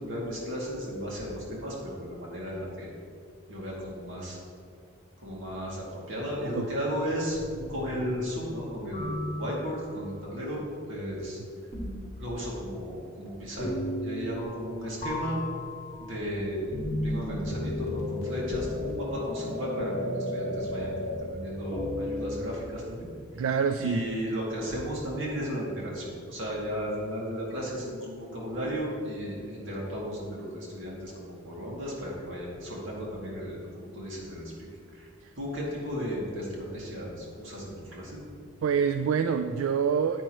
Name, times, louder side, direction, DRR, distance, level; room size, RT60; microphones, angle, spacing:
voice 1, 0.0-2.9 3.5-4.4 5.2-11.4 12.2-13.7 14.0-15.4 16.0-16.7 17.0-23.1 23.8-34.5 34.9-35.1 35.4-38.2, equal, 65° right, -4 dB, 2.4 m, -34 dB
sound 1, 7.3-8.1 8.9-10.0 11.7-12.3 13.6-14.7 15.0-22.4, left 1 dB, 30° left, 1.9 m, -34 dB
voice 2, 23.4-24.1 38.6-40.2, right 6 dB, 90° right, 8 dB, 0.3 m, -26 dB
10.0 x 8.8 x 3.1 m, 2.2 s
head